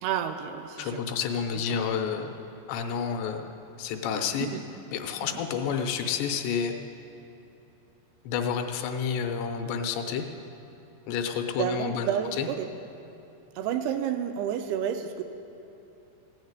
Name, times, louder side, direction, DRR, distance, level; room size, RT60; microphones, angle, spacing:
voice 1, 0.0-1.0 1.5-1.6 4.3-4.6 5.3-5.4 11.6-12.7 13.6-15.2, right 9 dB, 85° right, 8 dB, 2.3 m, -30 dB
voice 2, 0.8-2.3 2.7-3.5 3.8-4.5 4.9-6.8 8.2-10.3 11.1-12.5, left 7 dB, 80° left, 5 dB, 2.9 m, -30 dB
16.0 x 7.3 x 9.5 m, 2.8 s
omnidirectional pair, 5.0 m